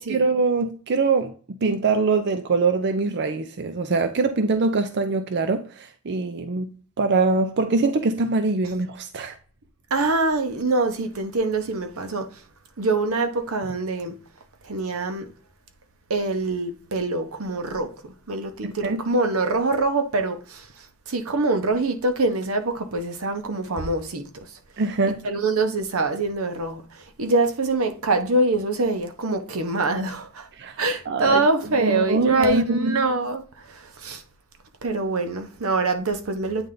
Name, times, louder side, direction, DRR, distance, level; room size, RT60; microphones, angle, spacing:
voice 1, 0.0-1.3 1.6-6.7 7.0-9.4 18.8-19.0 24.8-25.3 30.6-30.8 31.1-31.4 31.8-33.0, right 3 dB, 55° right, 0.6 m, -23 dB
voice 2, 9.9-12.4 12.8-14.1 14.6-15.3 16.1-24.5 25.1-30.5 30.8-34.2 34.8-36.7, right 2 dB, 80° right, 0.9 m, -25 dB
8.9 x 3.3 x 3.8 m
head